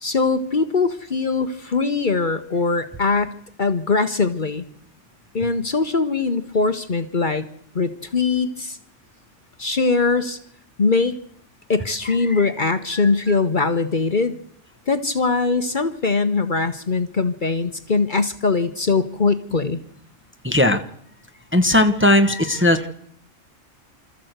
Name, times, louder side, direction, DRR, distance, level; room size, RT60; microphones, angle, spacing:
voice 1, 0.0-3.3 3.6-4.6 5.3-7.5 7.7-8.8 9.6-10.4 10.8-11.2 11.7-14.3 14.9-19.8, left 4 dB, 45° left, 10 dB, 1.1 m, -21 dB
voice 2, 12.9-13.4 20.4-20.8 21.5-22.9, left 1 dB, 10° right, 7 dB, 1.1 m, -18 dB
26.0 x 14.0 x 8.0 m, 0.71 s
omnidirectional pair, 1.3 m